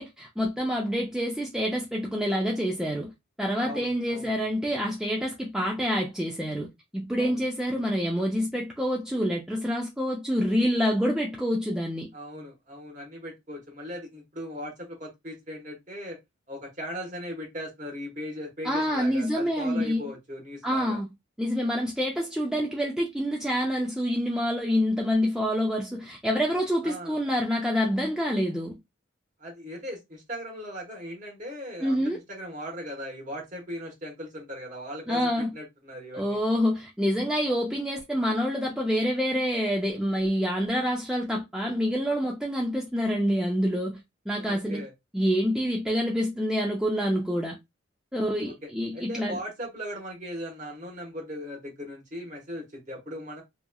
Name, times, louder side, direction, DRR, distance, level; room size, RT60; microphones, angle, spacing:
voice 1, 0.0-3.1 3.4-6.7 6.9-12.1 18.6-20.0 20.6-21.1 21.4-28.8 31.8-32.2 35.1-35.5 36.1-44.0 44.3-44.8 45.1-47.6 48.1-49.4, equal, 5° right, 0.3 m, -27 dB
voice 2, 3.6-4.3 7.2-7.5 12.1-16.2 16.5-21.0 26.8-27.2 29.4-36.4 44.3-44.9 48.4-48.5 48.9-53.4, equal, 40° right, 1.1 m, -38 dB
2.9 x 2.3 x 2.2 m
head